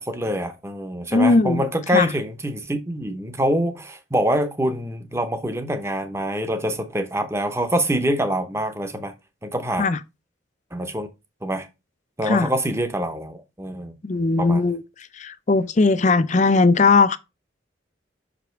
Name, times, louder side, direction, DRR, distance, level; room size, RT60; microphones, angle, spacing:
voice 1, 0.0-9.1 9.4-9.9 10.7-11.1 11.4-11.7 12.2-13.9 14.4-14.6, equal, 15° right, 0.8 m, -25 dB
voice 2, 1.1-1.7 1.9-2.1 9.8-10.0 12.3-12.5 14.0-14.8 15.1-17.2, left 3 dB, 35° left, 0.5 m, -18 dB
6.0 x 5.0 x 4.5 m
head